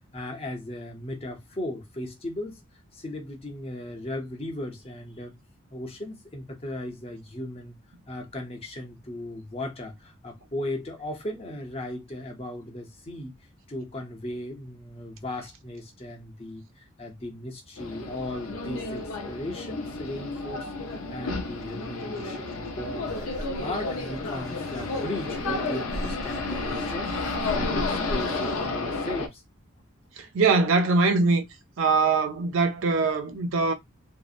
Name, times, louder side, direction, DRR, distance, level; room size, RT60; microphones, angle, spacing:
voice 1, 0.1-2.6 2.9-5.3 5.7-7.7 8.1-13.3 13.7-27.1 27.5-29.4, left 1 dB, 30° left, 0.6 m, -37 dB
sound 1, 17.8-29.3, left 3 dB, 85° left, 0.5 m, -32 dB
sound 2, 23.1-28.7, right 1 dB, 15° right, 0.8 m, -38 dB
voice 2, 30.3-31.4 31.8-33.7, right 4 dB, 70° right, 0.4 m, -22 dB
2.7 x 2.0 x 2.4 m
head